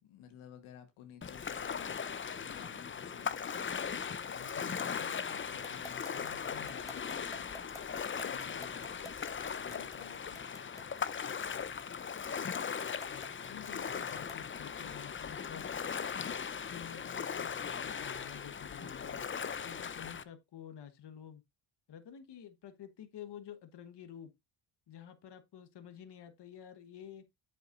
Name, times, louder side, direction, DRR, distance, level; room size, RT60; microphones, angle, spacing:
voice 1, 0.0-2.0 2.4-3.7 4.3-7.4 8.1-9.1 9.5-10.4, left 9 dB, 80° left, 1.3 m, -54 dB
Ocean, 1.2-20.2, left 6 dB, 25° left, 0.6 m, -39 dB
sound 1, 5.6-14.5, left 1 dB, 5° left, 1.4 m, -50 dB
voice 2, 13.0-15.7 16.7-17.5 17.8-19.3 19.6-21.4 21.9-24.3 24.9-27.2, left 9 dB, 55° left, 1.3 m, -50 dB
7.8 x 7.2 x 2.5 m
supercardioid pair, 55°, 49 cm